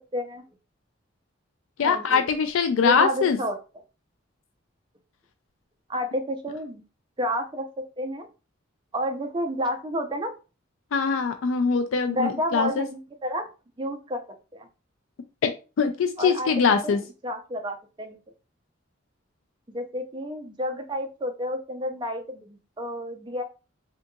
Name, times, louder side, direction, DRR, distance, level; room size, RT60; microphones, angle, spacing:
voice 1, 0.1-0.4 1.8-2.2 2.8-3.6 5.9-6.8 7.2-8.3 8.9-10.3 12.1-13.5 13.8-14.2 14.5-14.7 16.2-16.5 16.8-18.2 19.7-23.4, equal, 25° right, 5 dB, 0.5 m, -30 dB
voice 2, 1.8-3.4 10.9-12.9 15.4-15.5 15.8-17.0, left 5 dB, 85° left, 7 dB, 0.4 m, -22 dB
3.6 x 2.8 x 2.3 m, 0.32 s
head